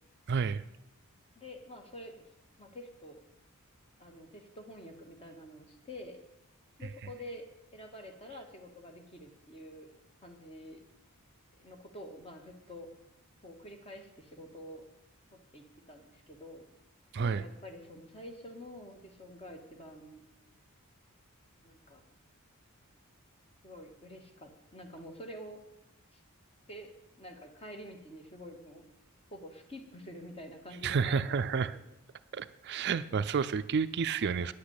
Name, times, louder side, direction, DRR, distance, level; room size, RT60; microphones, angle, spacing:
voice 1, 0.3-0.6 17.1-17.4 30.8-31.8 32.3-34.5, right 5 dB, 50° right, 13 dB, 0.4 m, -30 dB
voice 2, 1.4-2.2 2.6-3.2 4.0-6.2 6.8-9.9 10.2-10.8 11.6-12.9 13.4-14.9 15.3-16.7 17.2-20.3 21.6-22.0 23.6-25.6 26.1-26.2 26.7-26.9 27.2-28.8 29.3-31.7, equal, 25° left, 4 dB, 1.7 m, -48 dB
10.0 x 8.6 x 8.2 m, 0.88 s
head